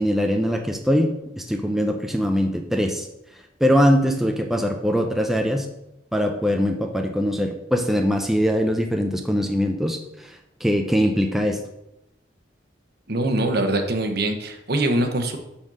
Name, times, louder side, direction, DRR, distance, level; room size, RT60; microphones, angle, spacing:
voice 1, 0.0-3.1 3.6-5.7 6.1-11.6, equal, ahead, 4 dB, 0.6 m, -22 dB
voice 2, 13.1-15.4, right 1 dB, 55° right, 6 dB, 1.1 m, -23 dB
8.9 x 4.3 x 6.2 m, 0.86 s
head